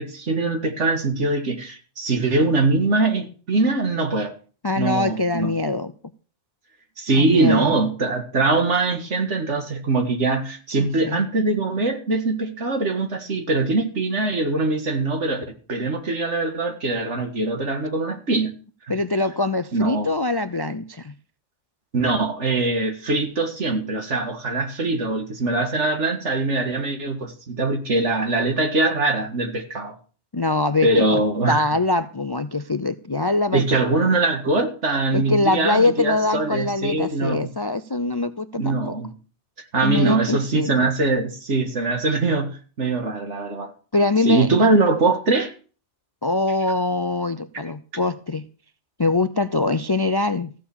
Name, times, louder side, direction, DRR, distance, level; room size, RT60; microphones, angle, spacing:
voice 1, 0.0-4.3 4.8-5.5 7.0-18.5 19.7-20.1 21.9-30.0 30.8-31.7 33.5-37.5 38.6-39.1 39.7-43.7 44.3-45.5 47.5-47.6, right 3 dB, 75° right, 2.2 m, -22 dB
voice 2, 4.6-5.9 7.2-7.8 10.8-11.2 18.9-21.1 30.3-31.2 31.5-33.6 35.1-38.9 39.8-40.9 43.9-44.5 44.7-44.9 46.2-48.5 49.0-50.5, left 2 dB, 35° left, 0.4 m, -23 dB
15.0 x 7.2 x 7.1 m
omnidirectional pair, 1.2 m